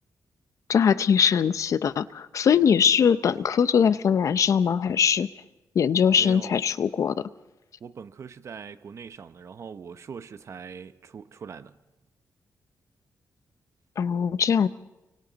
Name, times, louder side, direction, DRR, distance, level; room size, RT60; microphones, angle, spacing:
voice 1, 0.7-5.3 5.8-7.3 14.0-14.7, left 7 dB, 60° left, 0.6 m, -21 dB
voice 2, 6.2-6.6 7.8-11.8, right 6 dB, 55° right, 0.8 m, -41 dB
30.0 x 24.5 x 4.0 m
wide cardioid pair, 140°, 6 cm